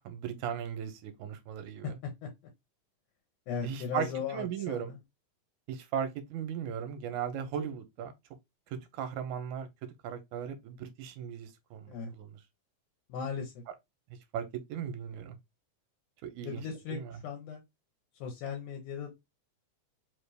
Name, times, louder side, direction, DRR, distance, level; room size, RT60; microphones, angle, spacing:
voice 1, 0.1-2.0 3.6-4.9 5.7-8.1 8.7-9.7 10.0-12.4 14.3-15.4 16.2-16.6 16.9-17.2, right 8 dB, 80° right, 2.2 m, -37 dB
voice 2, 3.5-5.0 11.9-12.1 13.1-13.5 16.4-17.6 18.2-19.1, left 6 dB, 80° left, 2.3 m, -37 dB
5.0 x 2.5 x 3.3 m
omnidirectional pair, 3.6 m